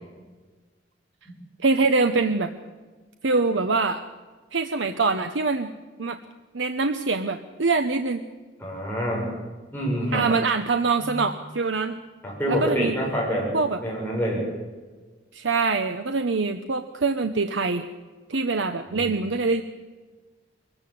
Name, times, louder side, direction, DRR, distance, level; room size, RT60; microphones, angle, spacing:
voice 1, 1.6-2.5 3.2-4.0 4.5-5.7 6.0-6.2 6.5-8.2 10.1-12.0 12.5-12.9 13.5-13.8 15.3-17.9 18.3-19.6, right 3 dB, 85° right, 7 dB, 0.9 m, -24 dB
voice 2, 8.6-9.3 9.7-10.2 11.0-11.1 12.2-13.5 13.8-14.4 18.9-19.1, equal, 10° left, -4 dB, 7.5 m, -27 dB
22.5 x 15.5 x 7.7 m, 1.4 s
head